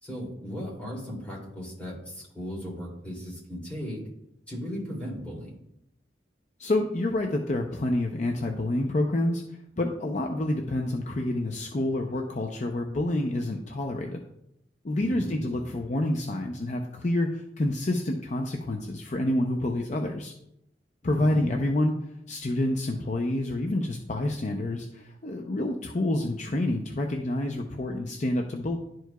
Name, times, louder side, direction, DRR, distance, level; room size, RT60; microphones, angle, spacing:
voice 1, 0.0-4.0 4.5-5.6 15.0-15.8 21.1-21.5, equal, 10° left, -5 dB, 2.6 m, -37 dB
voice 2, 6.6-9.4 9.8-14.2 14.8-20.3 21.0-21.9 22.3-28.8, left 1 dB, 40° left, 2 dB, 0.5 m, -28 dB
11.5 x 4.7 x 2.3 m, 0.78 s
head